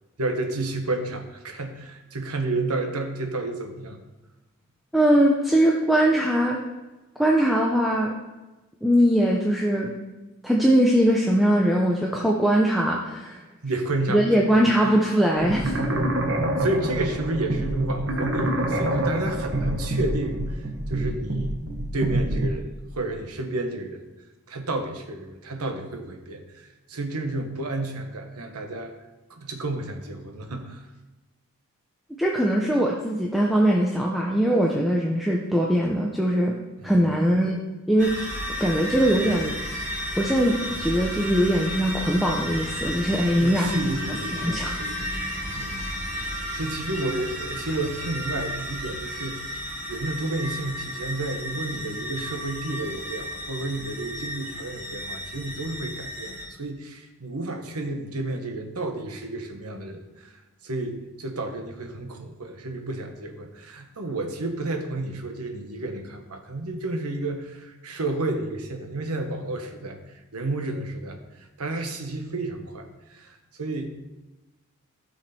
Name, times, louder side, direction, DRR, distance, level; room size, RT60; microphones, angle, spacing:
voice 1, 0.2-4.0 13.6-15.0 16.6-21.6 21.9-22.7 22.9-24.0 24.5-28.9 29.3-30.9 36.8-37.1 43.4-45.1 45.6-45.8 46.1-73.9, right 2 dB, 85° right, 6 dB, 1.3 m, -31 dB
voice 2, 4.9-6.6 7.2-8.1 8.8-9.9 10.4-13.4 14.1-15.7 32.2-36.6 36.8-37.6 37.9-38.2 38.6-39.6 40.2-43.7 44.1-44.7, equal, ahead, -2 dB, 0.7 m, -21 dB
sound 1, 15.4-22.5, right 1 dB, 55° right, 1.3 m, -26 dB
sound 2, 38.0-56.5, equal, 35° right, 2.1 m, -33 dB
14.5 x 6.3 x 4.4 m, 1.1 s
head